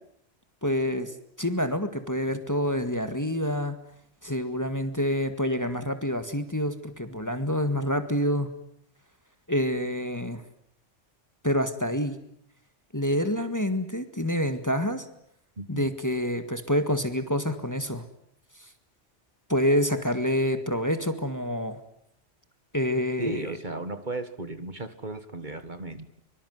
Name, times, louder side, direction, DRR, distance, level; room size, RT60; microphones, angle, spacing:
voice 1, 0.6-3.8 4.2-8.5 9.5-10.4 11.4-12.1 12.9-15.0 15.7-18.0 19.5-21.8 22.7-23.4, equal, 15° left, 9 dB, 1.8 m, -27 dB
voice 2, 15.6-15.9 23.2-26.1, right 2 dB, 40° right, 10 dB, 1.8 m, -35 dB
24.0 x 24.0 x 9.5 m, 0.71 s
omnidirectional pair, 1.2 m